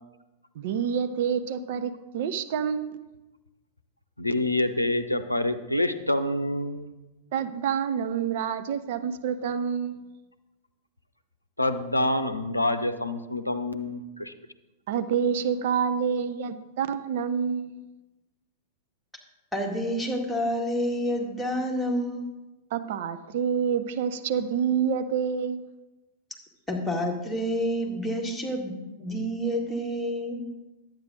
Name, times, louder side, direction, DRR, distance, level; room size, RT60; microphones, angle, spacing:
voice 1, 0.6-3.1 7.3-10.0 14.9-17.8 22.7-25.7, right 7 dB, 55° right, 10 dB, 0.6 m, -28 dB
voice 2, 4.2-6.9 11.6-14.3, left 1 dB, 85° left, 10 dB, 0.6 m, -27 dB
voice 3, 19.5-22.2 26.7-30.4, equal, ahead, -2 dB, 2.0 m, -29 dB
11.0 x 8.9 x 3.8 m, 1.1 s
figure-of-eight pair, 95°, 0 cm